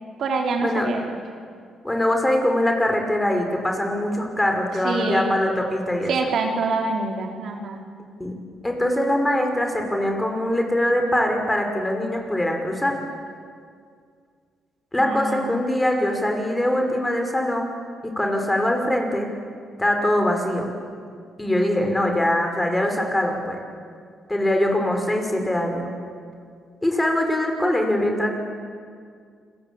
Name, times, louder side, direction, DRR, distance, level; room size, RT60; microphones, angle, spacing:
voice 1, 0.2-1.2 4.8-5.4 6.1-7.8 15.0-15.5, right 3 dB, 60° right, 2 dB, 3.6 m, -25 dB
voice 2, 1.8-6.1 8.2-8.3 8.6-13.0 14.9-17.7 18.0-19.3 19.8-20.7 21.4-23.6 24.3-25.9 26.8-28.3, left 1 dB, 10° left, 3 dB, 5.5 m, -22 dB
29.0 x 21.0 x 8.7 m, 2.2 s
cardioid pair, 90°, 0 cm